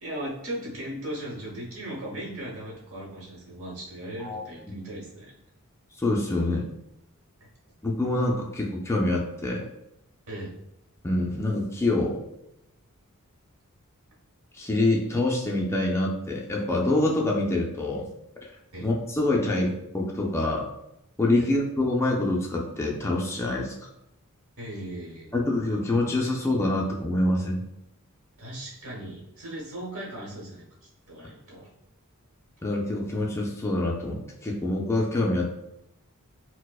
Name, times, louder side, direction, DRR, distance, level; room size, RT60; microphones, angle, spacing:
voice 1, 0.0-5.3 10.3-10.5 18.7-18.9 21.4-21.5 24.6-25.3 28.4-30.6 31.1-31.7, right 1 dB, 65° right, -4 dB, 1.1 m, -37 dB
voice 2, 4.2-4.8 6.0-6.7 7.8-9.7 11.0-12.2 14.5-18.1 18.8-20.7 21.2-23.7 25.3-27.6 32.6-35.5, left 2 dB, 10° left, -2 dB, 0.3 m, -26 dB
4.3 x 2.0 x 2.3 m, 0.85 s
head